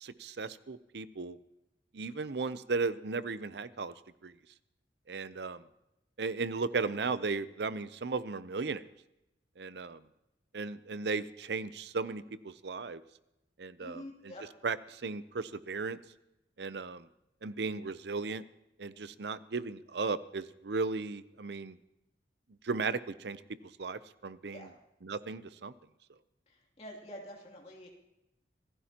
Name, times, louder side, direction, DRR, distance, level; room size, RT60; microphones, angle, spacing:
voice 1, 0.0-1.4 1.9-3.9 4.2-4.3 5.1-5.6 6.2-8.8 9.6-10.0 10.5-13.0 13.6-14.0 14.6-16.0 16.6-17.0 17.4-18.4 18.8-21.7 22.6-23.4 23.8-24.7 25.0-25.7, right 4 dB, 65° right, 15 dB, 0.6 m, -36 dB
voice 2, 13.8-14.4 24.5-24.7 26.5-27.9, equal, 35° left, -1 dB, 2.8 m, -47 dB
26.0 x 15.5 x 2.9 m, 0.89 s
head